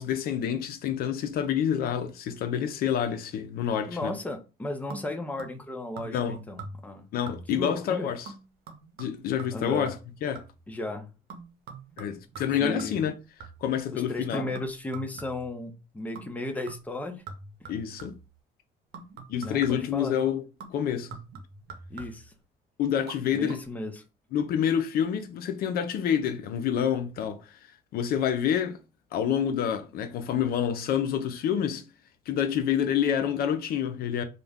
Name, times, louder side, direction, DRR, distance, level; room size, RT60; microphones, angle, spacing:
voice 1, 0.0-4.1 6.0-6.4 7.1-8.3 9.0-10.5 12.0-13.1 13.6-14.6 17.7-18.2 19.3-20.4 20.7-21.2 22.8-23.6 24.3-28.8 29.1-31.9 32.3-34.2, left 9 dB, 60° left, 0.4 m, -28 dB
voice 2, 3.9-7.1 7.5-8.1 9.5-9.9 10.7-11.1 12.6-13.1 13.9-17.2 17.6-17.7 19.4-20.2 21.9-22.3 23.3-24.0, left 2 dB, 10° left, 0.5 m, -35 dB
sound 1, 4.9-5.7 6.0-6.3 6.6-7.0 7.3-7.7 8.3-10.7 11.3-13.8 14.3-15.6 16.2-16.4 16.7-18.3 18.9-20.0 20.6-22.4 23.0-23.2 23.5-23.6, right 4 dB, 70° right, 0.8 m, -44 dB
2.4 x 2.1 x 3.3 m
cardioid pair, 110°, 17 cm